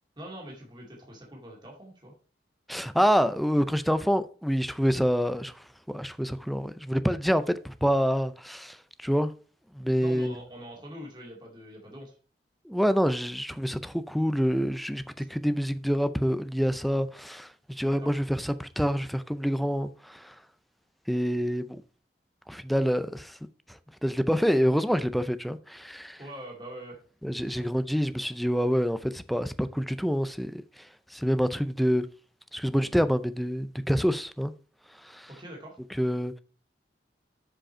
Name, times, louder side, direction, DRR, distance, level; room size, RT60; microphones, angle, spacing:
voice 1, 0.2-2.1 10.0-12.1 15.2-15.3 17.9-18.1 26.2-27.0 27.4-27.6 35.3-35.8, equal, 25° right, 2.2 m, -44 dB
voice 2, 2.7-9.3 9.7-10.4 12.7-20.3 21.1-21.8 22.5-23.4 24.0-26.2 27.2-32.1 32.5-34.5 35.0-35.3 35.9-36.4, equal, ahead, 0.4 m, -27 dB
7.4 x 5.2 x 4.3 m
head